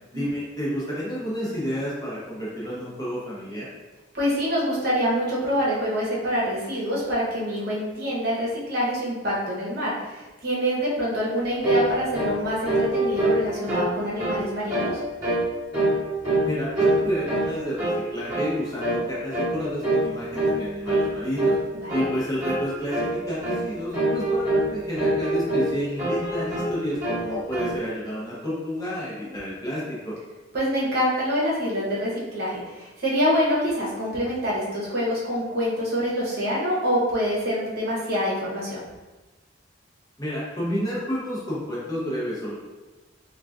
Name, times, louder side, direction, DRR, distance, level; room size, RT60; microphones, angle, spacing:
voice 1, 0.1-3.6 16.4-21.6 21.9-30.1 40.2-42.5, equal, 20° left, -8 dB, 0.8 m, -30 dB
voice 2, 4.1-14.9 21.7-22.1 30.5-38.8, equal, 50° right, -6 dB, 0.9 m, -26 dB
sound 1, 11.6-11.9 12.1-12.4 12.6-13.9 14.2-14.4 14.7-14.9 15.2-15.5 15.7-16.5 16.7-17.5 17.8-18.0 18.3-18.5 18.8-19.0 19.3-19.5 19.8-20.1 20.3-20.6 20.9-21.1 21.4-21.6 21.9-22.1 22.4-22.7 22.9-23.1 23.4-23.6 23.9-24.7 25.0-25.7 26.0-26.7 27.0-27.7, right 1 dB, 20° right, 1.0 m, -24 dB
3.7 x 2.4 x 2.5 m, 1.2 s
head